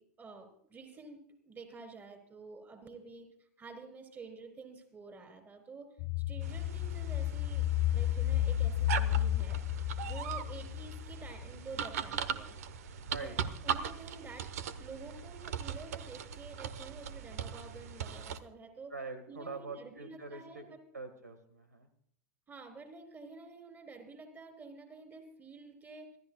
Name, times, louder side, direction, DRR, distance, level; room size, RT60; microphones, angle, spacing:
voice 1, 0.0-3.3 3.6-5.9 6.3-9.6 10.0-12.6 13.1-14.5 14.8-18.9 19.3-20.8 22.5-26.2, right 4 dB, 20° right, 6 dB, 4.0 m, -49 dB
sound 1, 6.0-11.6 12.0-12.1, left 13 dB, 50° left, 0.5 m, -32 dB
sound 2, 6.4-18.4, right 8 dB, 65° right, 1.2 m, -40 dB
voice 2, 18.9-20.7 20.9-21.9, right 3 dB, 85° right, 9 dB, 1.8 m, -44 dB
26.0 x 14.0 x 2.4 m, 0.67 s
figure-of-eight pair, 90°, 9 cm